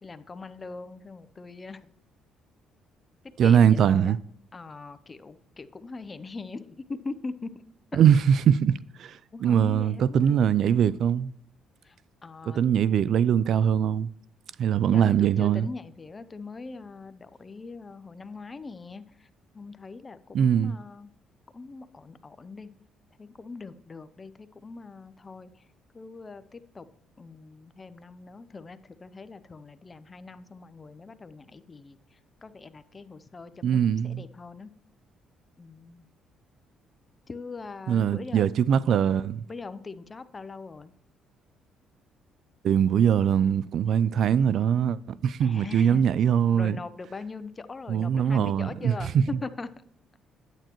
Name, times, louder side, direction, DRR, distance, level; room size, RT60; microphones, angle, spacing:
voice 1, 0.0-1.9 3.2-4.2 4.5-7.5 7.9-8.0 9.3-10.4 11.8-12.0 12.2-12.6 14.9-19.3 19.5-21.1 21.5-22.7 23.2-25.7 25.9-26.9 27.2-34.7 35.6-36.1 37.3-39.0 39.5-40.9 45.4-46.1 46.5-49.1 49.4-49.7, left 3 dB, 25° left, 0.6 m, -41 dB
voice 2, 3.4-4.2 8.0-11.3 12.6-14.1 14.6-15.7 20.3-20.7 33.6-34.2 37.9-39.4 42.6-46.8 47.9-48.9, right 8 dB, 60° right, 0.3 m, -22 dB
8.9 x 8.9 x 3.0 m
cardioid pair, 90°, 0 cm